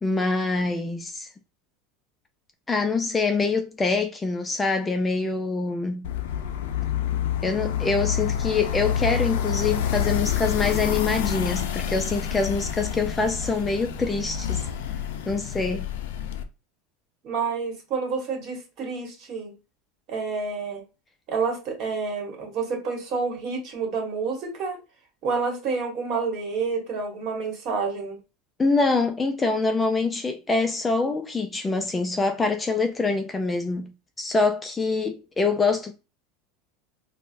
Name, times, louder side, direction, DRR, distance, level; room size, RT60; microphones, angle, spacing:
voice 1, 0.0-1.3 2.7-6.1 7.4-14.7 15.3-15.9 28.6-33.9 34.2-35.9, left 3 dB, 15° left, 0.3 m, -25 dB
sound 1, 6.0-16.4, left 9 dB, 90° left, 0.4 m, -28 dB
voice 2, 17.2-19.5 20.1-20.8 21.3-24.8 25.2-28.2, right 4 dB, 45° right, 1.3 m, -29 dB
4.3 x 2.0 x 2.5 m
supercardioid pair, 150°, 0 cm